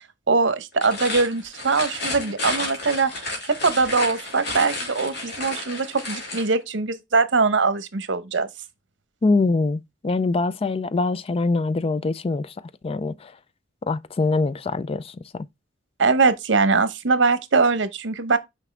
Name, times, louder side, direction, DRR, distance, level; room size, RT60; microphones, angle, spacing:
voice 1, 0.3-3.1 3.5-8.5 16.0-18.4, right 4 dB, 80° right, 0.9 m, -22 dB
sound 1, 0.7-6.5, left 2 dB, 65° left, 2.9 m, -31 dB
voice 2, 9.2-12.5 12.8-13.3 13.9-15.5, left 3 dB, 30° left, 0.4 m, -24 dB
6.0 x 5.3 x 3.4 m
head